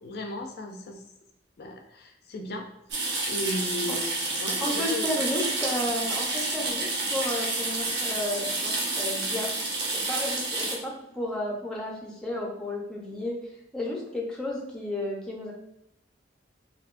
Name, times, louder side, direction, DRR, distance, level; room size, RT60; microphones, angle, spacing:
voice 1, 0.0-1.0 1.6-2.7 3.3-5.1, left 1 dB, 55° left, 3 dB, 0.4 m, -35 dB
sound 1, 2.9-10.7, right 2 dB, 65° right, 0.8 m, -29 dB
voice 2, 4.6-13.4 13.7-15.5, left 1 dB, 5° left, -2 dB, 0.6 m, -33 dB
3.3 x 2.7 x 2.5 m, 0.83 s
head